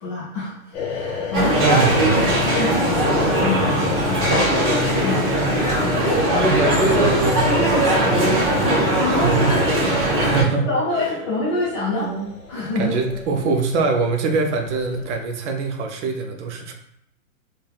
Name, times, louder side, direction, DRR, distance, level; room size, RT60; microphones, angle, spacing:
voice 1, 0.0-1.7 2.1-4.7 5.0-5.3 6.4-6.6 9.0-9.7 10.7-12.1 12.5-13.0, left 2 dB, 20° left, -5 dB, 0.4 m, -27 dB
sound 1, 0.7-15.1, left 5 dB, 45° left, 0.8 m, -35 dB
sound 2, 1.3-10.4, right 1 dB, 30° right, 1.1 m, -19 dB
voice 2, 1.3-2.3 6.4-8.5 9.1-9.9 10.2-10.7 12.0-12.3 12.8-16.7, right 4 dB, 55° right, 4 dB, 0.5 m, -24 dB
3.2 x 2.2 x 2.2 m, 0.74 s
hypercardioid pair, 125°, 43 cm